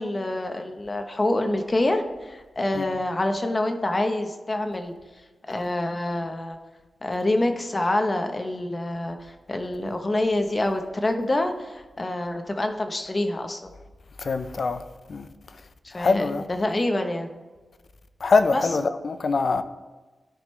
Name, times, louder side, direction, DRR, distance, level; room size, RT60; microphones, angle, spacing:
voice 1, 0.0-4.9 5.5-6.6 7.0-13.7 15.8-17.3 18.5-18.7, left 1 dB, 30° left, 1.0 m, -26 dB
voice 2, 14.2-14.8 15.1-15.3 15.9-16.4 18.2-19.6, left 4 dB, 60° left, 0.6 m, -23 dB
13.5 x 5.1 x 3.3 m
cardioid pair, 65°, 0 cm